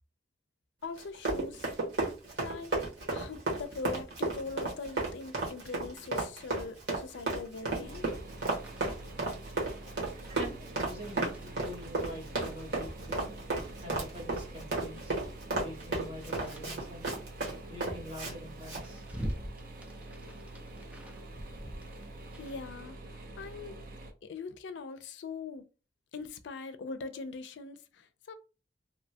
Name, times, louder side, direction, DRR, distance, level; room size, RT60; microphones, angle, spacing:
voice 1, 0.8-1.7 2.4-2.8 3.1-8.0 22.4-23.0 23.4-23.8 24.3-25.7 26.1-28.4, left 4 dB, 85° left, 0.4 m, -41 dB
Run, 1.0-18.3 18.6-18.8, right 2 dB, 80° right, 1.2 m, -33 dB
sound 1, 7.8-24.1, right 2 dB, 55° right, 0.6 m, -46 dB
sound 2, 7.9-22.6, equal, 5° right, 0.4 m, -48 dB
voice 2, 10.1-13.4 13.8-15.1 15.5-19.3, left 1 dB, 30° right, 1.0 m, -45 dB
2.8 x 2.2 x 2.7 m
head